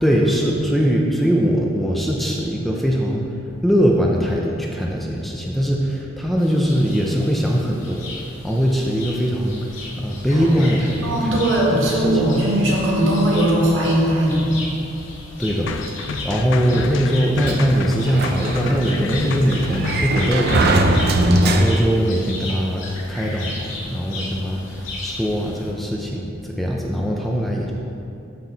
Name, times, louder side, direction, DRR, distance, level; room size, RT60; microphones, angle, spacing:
voice 1, 0.0-3.3 3.6-8.1 8.4-9.7 10.0-11.5 11.9-12.0 15.4-15.7 16.2-20.9 21.4-27.7, equal, ahead, -2 dB, 0.6 m, -21 dB
sound 1, 6.4-25.7, left 2 dB, 80° left, 1.9 m, -36 dB
voice 2, 11.0-14.5, right 1 dB, 70° right, -4 dB, 2.1 m, -19 dB
sound 2, 15.7-20.9, left 4 dB, 65° left, 0.4 m, -30 dB
Sliding door, 17.4-22.1, right 1 dB, 50° right, 0.6 m, -21 dB
13.0 x 4.6 x 4.0 m, 2.5 s
head